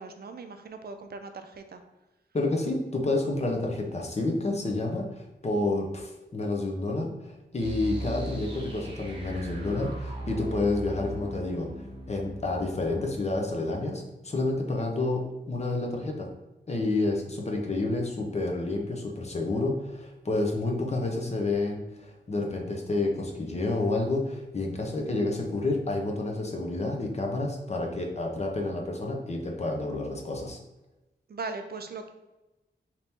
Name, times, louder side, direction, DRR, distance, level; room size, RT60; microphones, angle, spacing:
voice 1, 0.0-1.8 31.3-32.1, right 4 dB, 60° right, 7 dB, 0.4 m, -39 dB
voice 2, 2.3-11.7 12.1-16.3 16.7-30.6, left 2 dB, 35° left, 1 dB, 0.7 m, -29 dB
sound 1, 7.6-14.4, right 1 dB, 30° right, 1.0 m, -39 dB
4.2 x 2.9 x 3.5 m, 1.0 s
wide cardioid pair, 130°, 19 cm